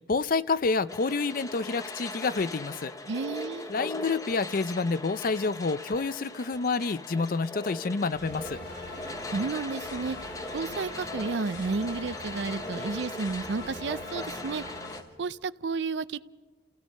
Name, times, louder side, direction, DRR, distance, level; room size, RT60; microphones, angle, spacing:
voice 1, 0.1-2.9 3.7-8.6, left 4 dB, 50° left, 15 dB, 0.5 m, -28 dB
sound 1, 0.9-15.0, left 2 dB, 20° left, 0.9 m, -40 dB
voice 2, 3.1-3.7 9.3-10.2 10.5-14.6 15.2-16.2, right 4 dB, 75° right, 17 dB, 0.5 m, -32 dB
sound 2, 8.1-15.0, left 1 dB, 85° left, 4.6 m, -43 dB
29.5 x 16.5 x 5.4 m, 1.3 s
head